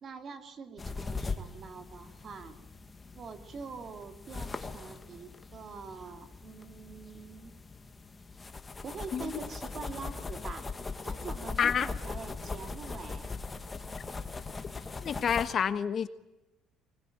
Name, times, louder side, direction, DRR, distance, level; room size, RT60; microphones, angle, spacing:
voice 1, 0.0-2.6 3.1-7.5 8.8-10.7 11.0-13.4, right 5 dB, 40° right, 7 dB, 3.0 m, -44 dB
sound 1, 0.8-15.5, left 4 dB, 20° left, 1.9 m, -40 dB
voice 2, 15.0-16.1, left 7 dB, 40° left, 11 dB, 1.4 m, -28 dB
24.5 x 21.5 x 9.0 m, 0.95 s
cardioid pair, 135°, 0 cm